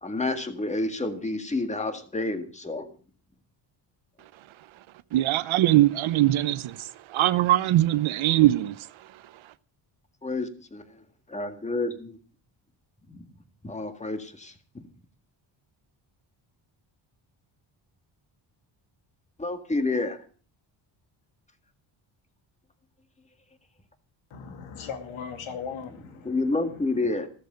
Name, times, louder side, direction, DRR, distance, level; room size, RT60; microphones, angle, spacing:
voice 1, 0.0-2.9 10.2-10.8 11.3-12.2 13.1-13.2 13.6-14.8 19.4-20.2 26.3-27.3, left 2 dB, 15° left, 1.9 m, -29 dB
voice 2, 5.1-8.7, right 15 dB, 75° right, 0.9 m, -22 dB
voice 3, 24.3-27.1, left 6 dB, 80° left, 2.5 m, -39 dB
15.0 x 13.5 x 5.2 m
cardioid pair, 135°, 48 cm